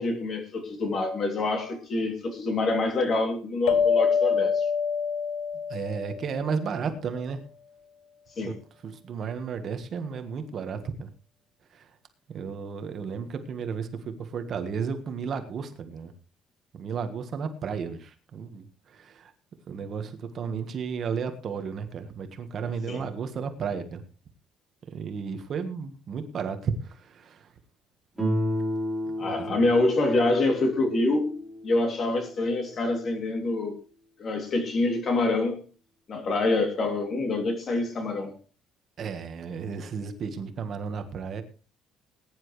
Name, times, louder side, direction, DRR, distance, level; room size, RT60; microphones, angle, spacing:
voice 1, 0.0-4.7 8.4-8.5 22.9-23.0 29.2-33.7 34.2-35.7 36.1-38.3, left 2 dB, 35° left, 2.8 m, -26 dB
sound 1, 3.7-6.7, left 6 dB, 70° left, 0.7 m, -25 dB
voice 2, 5.7-7.4 8.4-8.5 8.8-11.1 11.7-11.9 12.3-16.1 16.7-19.3 19.7-24.0 24.9-27.5 29.2-29.7 39.0-41.4, right 6 dB, 35° right, 1.4 m, -33 dB
Guitar, 28.2-33.0, equal, 5° right, 4.1 m, -32 dB
20.5 x 10.5 x 3.2 m
cardioid pair, 180°, 0 cm